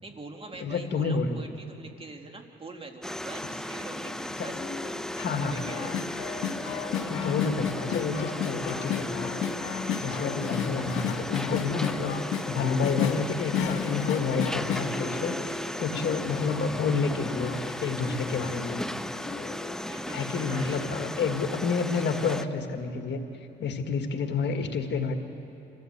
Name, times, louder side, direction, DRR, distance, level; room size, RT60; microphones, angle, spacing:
voice 1, 0.0-5.0 5.3-6.1 19.9-20.8, right 3 dB, 30° right, 3 dB, 2.5 m, -44 dB
voice 2, 0.6-1.4 4.4-4.5 5.2-5.6 7.1-9.3 10.0-18.8 20.1-23.2 23.6-25.1, left 5 dB, 60° left, 5 dB, 1.8 m, -29 dB
sound 1, 3.0-22.4, left 1 dB, 5° left, 0.7 m, -36 dB
Bird, 3.5-20.8, left 5 dB, 30° left, 2.8 m, -41 dB
sound 2, 5.5-15.9 16.3-18.7 19.3-19.4 19.7-19.9 20.5-21.4 21.8-21.9, left 8 dB, 85° left, 1.5 m, -34 dB
26.5 x 15.5 x 8.1 m, 2.9 s
cardioid pair, 90°, 20 cm